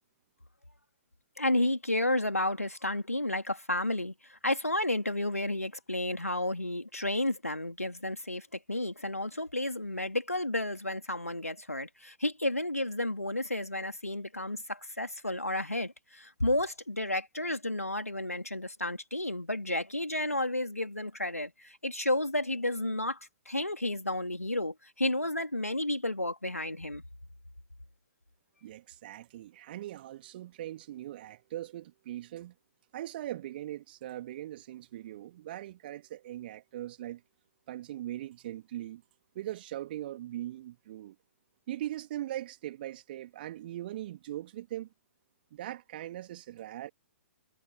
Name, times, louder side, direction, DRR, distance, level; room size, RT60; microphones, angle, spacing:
voice 1, 1.4-27.0, left 1 dB, 85° left, 2.7 m, -32 dB
voice 2, 28.6-32.5 32.9-37.2 37.7-39.0 39.3-41.1 41.7-44.9 45.5-46.9, right 13 dB, 40° right, 2.9 m, -40 dB
figure-of-eight pair, 120°, 8 cm